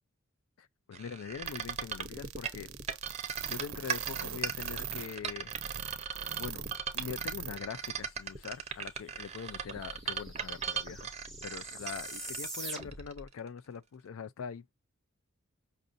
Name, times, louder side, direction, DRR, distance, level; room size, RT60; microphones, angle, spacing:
voice 1, 0.6-2.7 3.4-5.5 6.4-6.7 6.9-11.1 11.4-14.7, left 6 dB, 75° left, 0.4 m, -43 dB
sound 1, 0.9-13.5, right 7 dB, 30° right, 0.6 m, -38 dB
sound 2, 1.4-7.6 7.8-7.9 8.4-8.5, right 9 dB, 85° right, 0.5 m, -41 dB
sound 3, 8.8-8.9 9.0-13.3, right 2 dB, ahead, 0.9 m, -44 dB
5.3 x 2.5 x 2.5 m
head